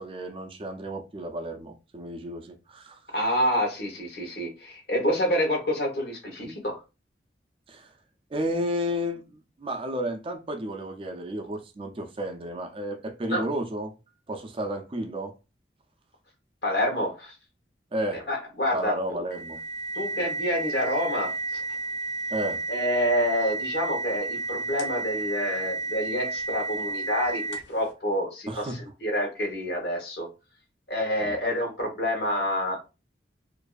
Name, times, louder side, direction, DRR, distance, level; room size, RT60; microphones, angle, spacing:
voice 1, 0.0-3.0 7.7-7.9 8.3-13.9 14.3-15.3 17.9-18.2 18.7-19.6 22.3-22.6 28.5-28.8 31.2-31.3, equal, 30° right, 0.4 m, -32 dB
voice 2, 3.1-6.8 13.3-13.4 16.6-17.3 18.1-19.2 19.9-21.3 22.7-28.7 29.0-30.3 30.9-32.8, equal, 65° left, 1.0 m, -27 dB
sound 1, 19.3-27.8, right 2 dB, 85° left, 0.6 m, -32 dB
2.5 x 2.3 x 2.3 m
head